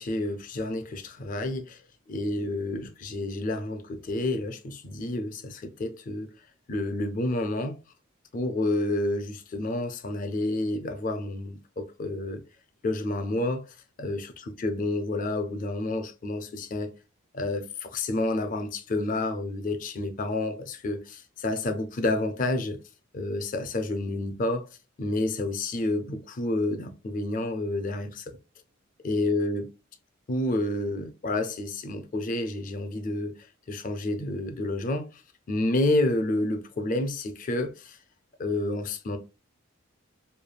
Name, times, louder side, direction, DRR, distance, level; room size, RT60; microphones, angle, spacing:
voice 1, 0.0-1.8 2.1-6.3 6.7-7.8 8.3-12.4 12.8-13.7 14.0-14.3 14.6-16.9 17.3-22.8 23.1-24.6 25.0-28.2 29.0-29.7 30.3-33.3 33.7-35.2 35.5-38.0 38.4-39.2, left 2 dB, 40° left, 0.4 m, -29 dB
3.2 x 2.2 x 2.2 m
head